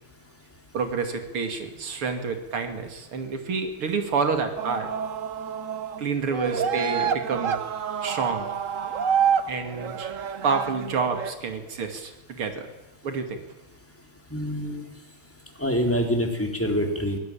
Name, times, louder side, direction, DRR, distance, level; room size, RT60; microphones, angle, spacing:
voice 1, 0.7-4.9 6.0-7.6 8.0-8.5 9.5-10.1 10.4-12.7 13.0-13.4, right 5 dB, 80° right, 6 dB, 3.4 m, -28 dB
sound 1, 4.6-6.0 6.3-11.3, right 7 dB, 50° right, 1.1 m, -28 dB
voice 2, 14.3-14.9 15.6-17.2, equal, 5° left, 3 dB, 3.6 m, -25 dB
23.5 x 17.5 x 8.8 m, 1.0 s
omnidirectional pair, 2.4 m